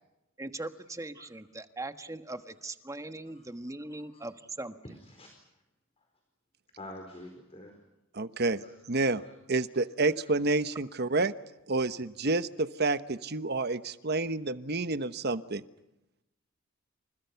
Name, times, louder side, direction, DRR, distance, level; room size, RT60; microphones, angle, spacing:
voice 1, 0.4-4.8, right 2 dB, 15° right, 9 dB, 1.4 m, -40 dB
voice 2, 3.9-4.2 4.8-5.4 6.0-6.1 6.8-7.8 8.6-8.7 9.2-9.3, left 1 dB, 30° left, 4 dB, 4.5 m, -47 dB
voice 3, 8.1-8.6 8.9-9.2 9.5-11.3 11.7-15.6, right 3 dB, 55° right, 12 dB, 1.1 m, -29 dB
29.5 x 27.5 x 5.9 m, 0.91 s
head